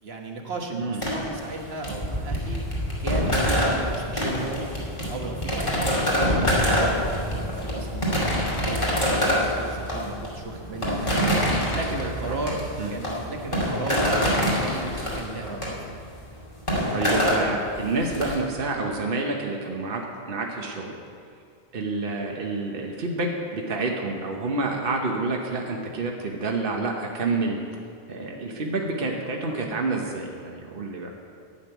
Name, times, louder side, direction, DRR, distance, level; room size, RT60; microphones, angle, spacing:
voice 1, 0.0-2.6 3.0-4.6 5.1-8.1 8.3-11.2 11.7-16.0, right 2 dB, 80° right, 2 dB, 1.5 m, -35 dB
sound 1, 1.0-18.3, equal, 30° left, 2.5 m, -25 dB
voice 2, 11.6-12.4 12.8-12.9 16.9-21.0 21.7-27.6 28.1-31.1, right 3 dB, 60° right, 1 dB, 1.2 m, -28 dB
11.5 x 6.6 x 9.0 m, 2.3 s
omnidirectional pair, 1.0 m